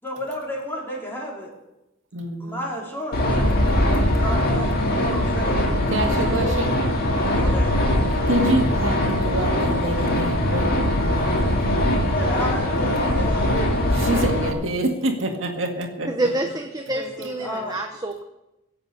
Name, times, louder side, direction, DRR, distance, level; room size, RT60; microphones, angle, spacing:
voice 1, 0.0-1.5 2.4-5.7 6.2-6.7 7.2-7.8 12.1-13.9 16.9-17.8, equal, 10° left, -3 dB, 4.4 m, -32 dB
voice 2, 2.1-2.6 5.9-6.7 8.3-12.1 14.0-16.1, right 1 dB, 75° right, 3 dB, 2.0 m, -26 dB
sound 1, 3.1-14.5, left 1 dB, 50° left, 2.4 m, -21 dB
voice 3, 16.1-18.2, right 2 dB, 20° right, 3 dB, 1.0 m, -27 dB
17.5 x 7.9 x 8.1 m, 0.94 s
head